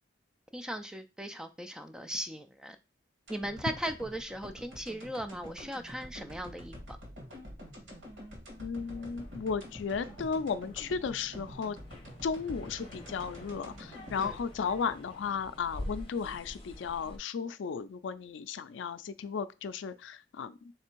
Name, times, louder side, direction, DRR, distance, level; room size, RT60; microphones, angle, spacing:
voice 1, 0.5-2.8 3.3-6.8 14.2-14.4, right 1 dB, 5° right, 0.3 m, -38 dB
sound 1, 3.3-15.5 15.9-16.0, equal, 90° right, 1.7 m, -48 dB
voice 2, 8.6-11.8 12.2-20.6, left 6 dB, 80° left, 0.4 m, -35 dB
sound 2, 8.7-17.2, left 1 dB, 30° left, 1.0 m, -47 dB
3.4 x 3.3 x 4.5 m
head